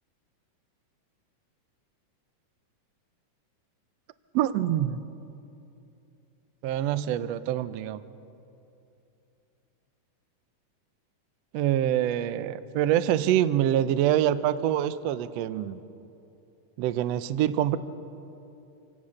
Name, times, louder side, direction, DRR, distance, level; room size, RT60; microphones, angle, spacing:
voice 1, 4.3-5.0 6.6-8.0 11.5-15.8 16.8-17.8, right 11 dB, 85° right, 14 dB, 1.4 m, -25 dB
27.5 x 17.0 x 6.5 m, 2.8 s
omnidirectional pair, 3.7 m